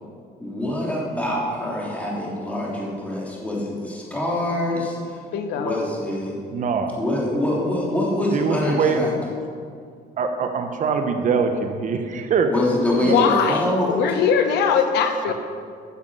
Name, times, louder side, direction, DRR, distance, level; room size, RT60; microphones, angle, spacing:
voice 1, 0.4-5.2 5.5-6.4 7.0-9.1 12.5-13.9, left 1 dB, 10° left, -4 dB, 3.1 m, -24 dB
voice 2, 5.3-5.8 13.0-15.3, left 6 dB, 80° left, 6 dB, 1.0 m, -21 dB
voice 3, 6.5-7.0 8.3-9.0 10.2-12.5 13.0-13.2, right 5 dB, 50° right, 6 dB, 0.9 m, -23 dB
13.0 x 7.3 x 5.5 m, 2.2 s
cardioid pair, 110°, 17 cm